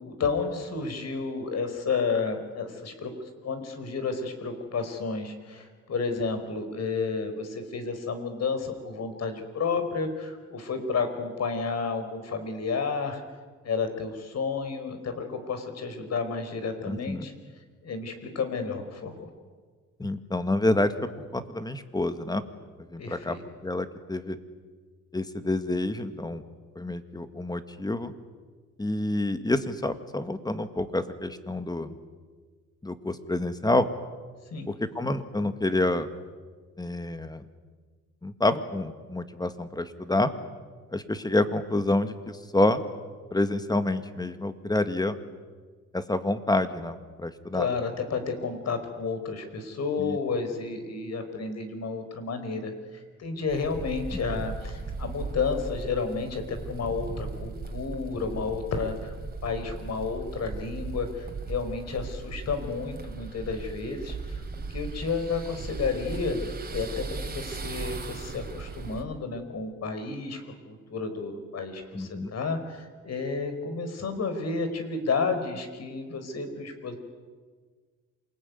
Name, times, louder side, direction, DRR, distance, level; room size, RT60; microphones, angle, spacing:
voice 1, 0.0-3.1 3.4-13.2 13.6-17.3 17.8-19.3 23.0-23.4 34.5-34.7 47.5-52.7 53.2-59.1 59.4-64.4 64.7-66.4 66.7-70.4 70.7-77.0, left 4 dB, 55° left, 8 dB, 4.7 m, -31 dB
voice 2, 16.9-17.3 20.0-22.5 22.9-23.4 23.6-24.4 25.1-26.4 26.8-28.1 28.8-31.9 32.8-33.9 34.7-36.1 36.8-37.5 38.2-40.3 40.9-42.8 43.3-45.2 45.9-47.7 50.0-50.2 54.1-54.2 71.9-72.3, left 2 dB, 15° left, 10 dB, 2.0 m, -28 dB
sound 1, 53.5-69.0, right 3 dB, 30° right, 3.6 m, -37 dB
27.5 x 20.0 x 9.5 m, 1.5 s
cardioid pair, 90°, 30 cm